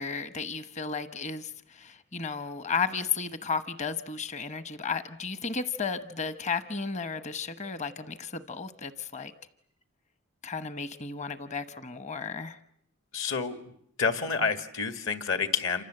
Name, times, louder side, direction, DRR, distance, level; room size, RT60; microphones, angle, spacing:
voice 1, 0.0-9.3 10.4-12.6, left 5 dB, 30° left, 11 dB, 1.0 m, -34 dB
voice 2, 13.1-13.6 14.0-15.8, left 5 dB, 60° left, 8 dB, 2.1 m, -28 dB
28.0 x 26.0 x 7.8 m, 0.68 s
head